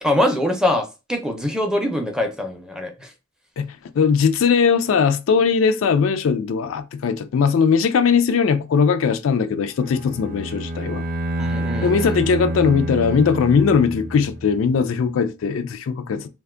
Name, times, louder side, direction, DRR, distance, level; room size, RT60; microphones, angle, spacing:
voice 1, 0.0-3.1 11.4-12.2, left 1 dB, 5° right, 0.5 m, -23 dB
voice 2, 3.6-11.0 11.8-16.3, left 6 dB, 75° left, 0.4 m, -19 dB
Bowed string instrument, 9.8-14.6, right 1 dB, 40° right, 0.6 m, -28 dB
2.5 x 2.2 x 3.6 m
head